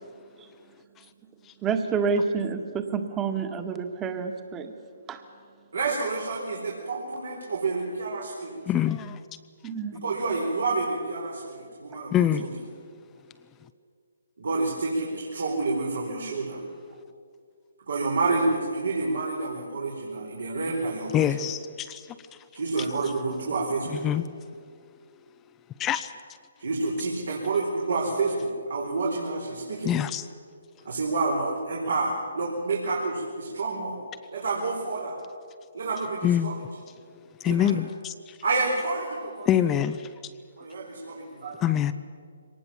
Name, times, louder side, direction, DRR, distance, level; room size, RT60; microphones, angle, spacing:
voice 1, 1.6-4.7 5.1-5.2 9.6-10.0, right 5 dB, 15° right, 6 dB, 1.8 m, -28 dB
voice 2, 5.7-8.6 9.9-12.5 14.4-16.6 17.9-21.3 22.5-24.1 26.6-29.9 30.8-34.0 34.3-35.2 35.7-36.6 37.4-37.8 38.4-39.5 40.6-41.6, right 3 dB, 75° right, -2 dB, 4.3 m, -29 dB
voice 3, 8.7-9.2 12.1-12.5 21.1-22.1 24.0-24.2 25.8-26.1 29.8-30.3 36.2-36.5 37.4-38.4 39.5-40.1 41.6-41.9, left 10 dB, 15° left, 11 dB, 0.6 m, -25 dB
24.0 x 19.0 x 7.3 m, 2.2 s
hypercardioid pair, 145°, 0 cm